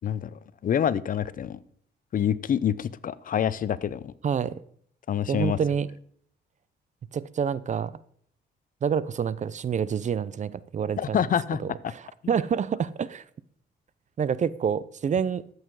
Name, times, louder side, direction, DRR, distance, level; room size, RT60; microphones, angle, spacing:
voice 1, 0.0-1.6 2.1-4.1 5.1-5.6 11.0-11.6, left 9 dB, 50° left, 0.6 m, -27 dB
voice 2, 4.2-4.6 5.3-5.9 7.1-8.0 8.8-11.3 11.6-13.2 14.2-15.5, right 7 dB, 40° right, 0.6 m, -28 dB
13.0 x 8.1 x 4.8 m
cardioid pair, 100°, 18 cm